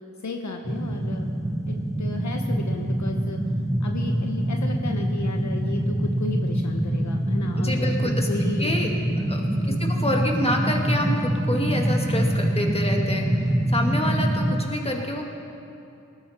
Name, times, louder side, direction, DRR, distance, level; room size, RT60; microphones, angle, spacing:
voice 1, 0.2-1.3 1.7-3.4 3.8-7.9 8.2-8.7 9.6-9.9, left 3 dB, 65° left, 3 dB, 1.0 m, -34 dB
sound 1, 0.6-14.6, right 1 dB, 10° right, 0.9 m, -25 dB
voice 2, 7.6-8.3 8.6-9.0 9.3-15.2, left 1 dB, 20° left, 0 dB, 2.3 m, -27 dB
19.0 x 14.0 x 4.4 m, 2.7 s
cardioid pair, 65°, 31 cm